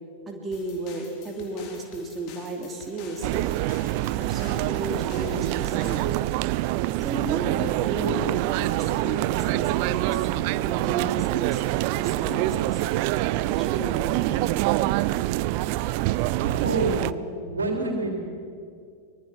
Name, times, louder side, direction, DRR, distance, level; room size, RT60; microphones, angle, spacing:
voice 1, 0.3-3.6 4.2-6.0 7.0-8.3 8.6-11.6 11.9-12.8 13.3-14.4, right 2 dB, 20° right, 0 dB, 2.9 m, -34 dB
sound 1, 0.5-6.2, left 5 dB, 40° left, 3.2 m, -48 dB
sound 2, 3.2-17.1, right 17 dB, 45° right, 0.5 m, -25 dB
voice 2, 16.4-17.1 17.5-18.2, right 2 dB, 75° right, 2 dB, 3.5 m, -27 dB
24.0 x 20.5 x 6.0 m, 2.3 s
figure-of-eight pair, 90°, 0 cm